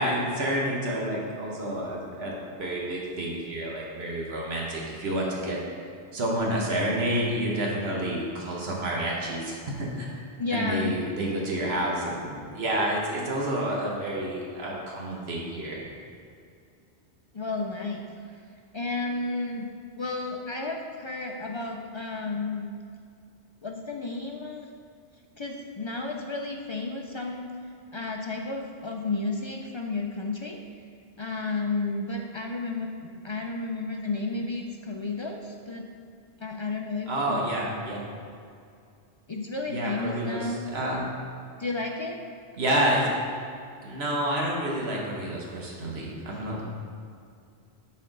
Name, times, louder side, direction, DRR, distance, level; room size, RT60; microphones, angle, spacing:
voice 1, 0.0-5.6 6.1-10.1 10.5-15.8 37.1-38.1 39.7-41.0 42.6-43.1 43.8-46.6, right 1 dB, 80° right, -3 dB, 1.3 m, -29 dB
voice 2, 10.4-10.9 17.3-18.1 18.7-19.7 20.0-22.7 23.6-24.7 25.4-27.5 27.9-30.6 31.2-35.9 36.4-37.4 39.3-40.7 41.6-42.2, left 3 dB, 45° left, 2 dB, 0.3 m, -32 dB
9.9 x 4.3 x 3.8 m, 2.4 s
omnidirectional pair, 1.0 m